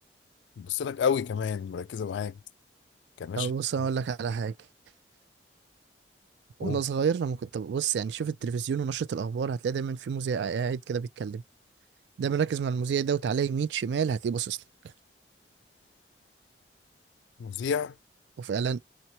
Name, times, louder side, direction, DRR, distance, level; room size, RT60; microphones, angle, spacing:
voice 1, 0.6-2.4 3.2-3.5 6.6-6.8 17.4-17.9, left 7 dB, 90° left, 0.3 m, -30 dB
voice 2, 3.4-4.5 6.6-11.4 12.2-14.6 18.4-18.8, right 7 dB, 80° right, 0.3 m, -29 dB
2.7 x 2.1 x 2.8 m
head